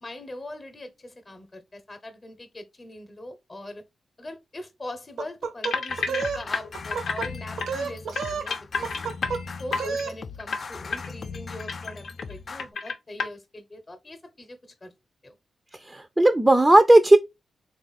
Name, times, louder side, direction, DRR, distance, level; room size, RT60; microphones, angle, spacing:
voice 1, 0.0-3.8 4.2-9.0 9.6-14.9 15.2-15.3, left 1 dB, 35° left, 0.8 m, -41 dB
sound 1, 5.2-6.4 6.7-7.3 7.6-8.5 8.8-9.4 9.7-10.2, right 5 dB, 90° right, 0.7 m, -30 dB
sound 2, 5.6-7.3 7.6-7.7 8.2-10.0 10.4-10.6 10.9-11.1 11.3-12.3 12.6-13.3, left 4 dB, 85° left, 0.7 m, -30 dB
sound 3, 5.9-12.7, left 4 dB, 55° left, 0.4 m, -39 dB
voice 2, 15.7-17.2, right 1 dB, 15° right, 0.4 m, -16 dB
3.5 x 2.4 x 4.0 m
cardioid pair, 60°, 0 cm